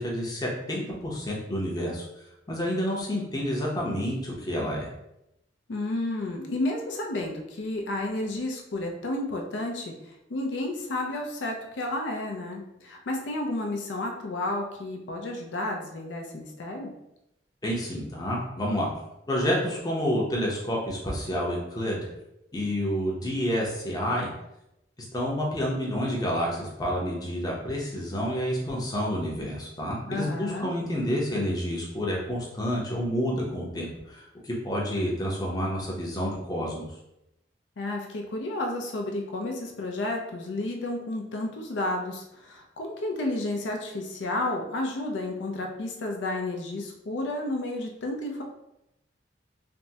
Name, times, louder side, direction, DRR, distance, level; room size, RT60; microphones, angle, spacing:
voice 1, 0.0-2.1 2.5-4.9 17.6-18.9 19.3-22.1 22.5-24.3 25.1-36.9, equal, 20° left, -3 dB, 0.6 m, -29 dB
voice 2, 5.7-9.9 10.3-16.9 30.1-30.7 37.8-48.4, left 2 dB, 90° left, 2 dB, 0.5 m, -31 dB
3.4 x 2.0 x 2.7 m, 0.86 s
head